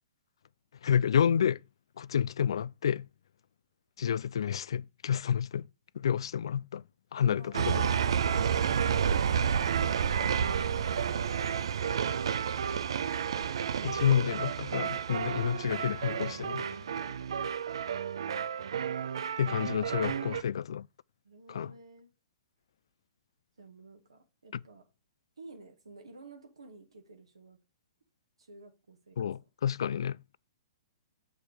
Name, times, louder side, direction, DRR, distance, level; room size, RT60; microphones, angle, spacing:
voice 1, 0.8-1.6 2.0-3.1 4.0-5.7 5.9-6.8 7.1-7.9 11.4-11.5 13.8-16.6 19.4-20.9 21.5-21.7 29.2-30.2, left 8 dB, 70° left, 0.3 m, -29 dB
voice 2, 7.2-7.5 16.6-17.8 20.1-20.6 21.2-22.1 23.6-24.8 25.4-27.6 28.4-29.2, right 3 dB, 90° right, 1.6 m, -53 dB
sound 1, 7.5-20.4, right 7 dB, 70° right, 0.5 m, -30 dB
7.1 x 4.9 x 4.9 m
hypercardioid pair, 120°, 3 cm